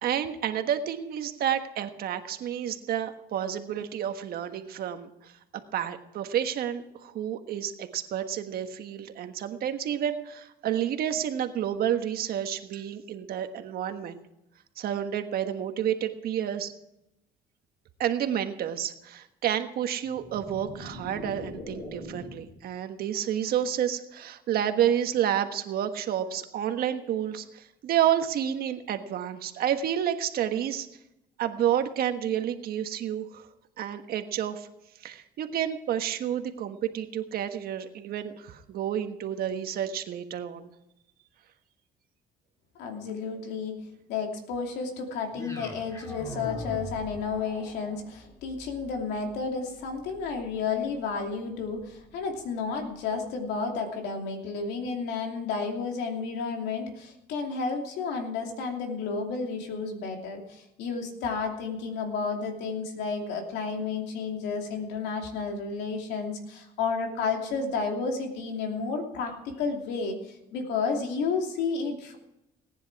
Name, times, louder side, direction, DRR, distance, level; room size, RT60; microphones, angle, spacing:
voice 1, 0.0-5.3 5.7-14.2 14.8-16.7 18.0-30.9 31.4-33.4 33.8-34.7 35.0-40.6, right 10 dB, 65° right, 7 dB, 1.4 m, -30 dB
sound 1, 20.0-22.6, left 1 dB, 40° left, 6.3 m, -41 dB
voice 2, 42.8-43.8 44.1-72.2, left 5 dB, 90° left, 3 dB, 2.9 m, -31 dB
sound 2, 45.3-53.5, left 1 dB, 20° left, 3.8 m, -44 dB
18.5 x 10.0 x 4.8 m, 0.86 s
cardioid pair, 110°, 17 cm